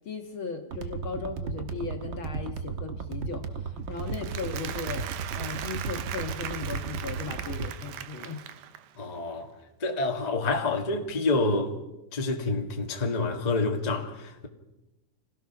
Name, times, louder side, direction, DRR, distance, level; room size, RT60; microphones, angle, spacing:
voice 1, 0.1-8.4, left 4 dB, 50° left, 1.9 m, -37 dB
sound 1, 0.7-7.7, right 5 dB, 55° right, 1.4 m, -35 dB
Applause, 4.0-9.0, right 10 dB, 90° right, 2.5 m, -39 dB
voice 2, 9.0-9.5 9.8-11.7 12.1-14.5, left 3 dB, 20° left, 1.2 m, -28 dB
27.5 x 17.0 x 6.0 m
omnidirectional pair, 3.6 m